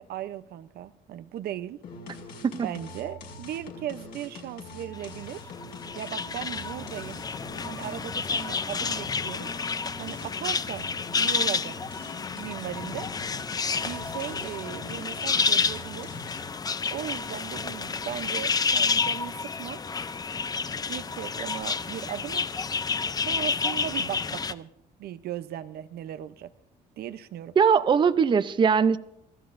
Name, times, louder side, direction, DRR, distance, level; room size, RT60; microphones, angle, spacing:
voice 1, 0.0-1.8 2.6-5.5 5.9-7.2 7.6-9.5 10.0-10.9 11.2-11.8 12.3-13.1 13.8-16.1 16.9-19.8 20.9-22.5 23.2-24.7 25.0-26.5 27.0-27.5, right 11 dB, 65° right, 0.7 m, -37 dB
sound 1, 1.8-16.6, left 3 dB, 70° left, 5.7 m, -44 dB
sound 2, 5.0-24.5, left 5 dB, 20° left, 0.5 m, -30 dB
voice 2, 27.6-29.0, right 6 dB, 30° right, 0.6 m, -21 dB
26.0 x 15.5 x 2.6 m
cardioid pair, 110°, 17 cm